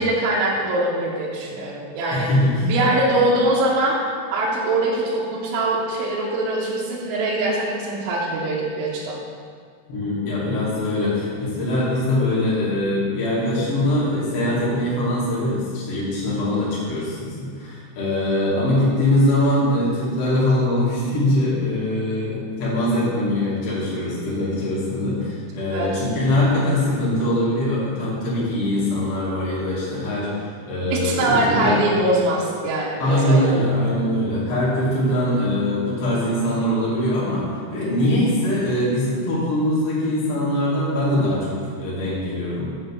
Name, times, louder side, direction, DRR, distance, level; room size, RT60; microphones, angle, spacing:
voice 1, 0.0-2.3 2.6-4.0 4.3-9.2 25.7-25.9 30.9-33.6, right 2 dB, 80° right, -4 dB, 3.2 m, -22 dB
voice 2, 2.1-2.7 9.9-31.8 33.0-42.8, left 1 dB, 45° left, -9 dB, 2.1 m, -22 dB
7.7 x 3.9 x 6.8 m, 2.1 s
omnidirectional pair, 5.4 m